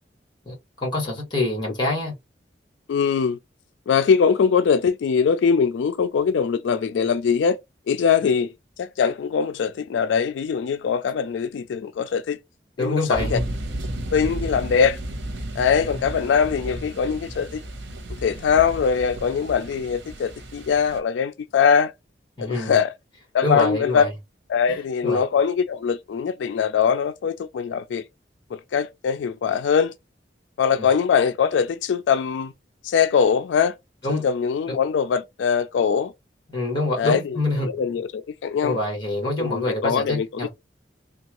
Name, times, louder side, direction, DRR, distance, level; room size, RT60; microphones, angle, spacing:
voice 1, 0.5-2.1 12.8-13.5 22.4-22.8 23.4-24.1 24.7-25.2 30.7-30.9 34.0-34.3 34.7-34.8 36.5-37.7 38.6-40.5, left 2 dB, 25° left, 1.7 m, -26 dB
voice 2, 2.9-3.4 3.9-7.6 7.9-8.5 8.8-12.4 12.8-13.4 14.1-15.0 15.6-17.6 18.2-21.9 22.4-22.9 23.3-24.1 24.5-28.0 28.7-29.9 30.6-32.5 32.8-33.7 34.1-36.1 37.0-37.2 37.7-38.8 39.4-40.3, left 6 dB, 85° left, 0.3 m, -22 dB
sound 1, 13.1-21.0, right 1 dB, 85° right, 0.8 m, -33 dB
3.4 x 2.3 x 2.9 m
head